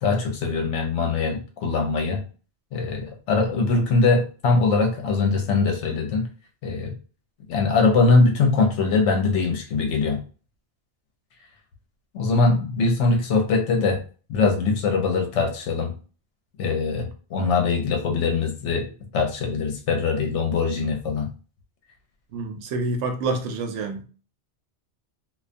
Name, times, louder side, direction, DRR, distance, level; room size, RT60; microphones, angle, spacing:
voice 1, 0.0-2.2 2.7-6.2 6.6-6.9 7.5-10.2 12.1-14.0 14.3-15.9 16.6-18.9 19.1-21.3, left 4 dB, 85° left, 0.9 m, -22 dB
voice 2, 22.3-24.0, right 3 dB, 90° right, 0.9 m, -27 dB
2.3 x 2.2 x 2.5 m
omnidirectional pair, 1.2 m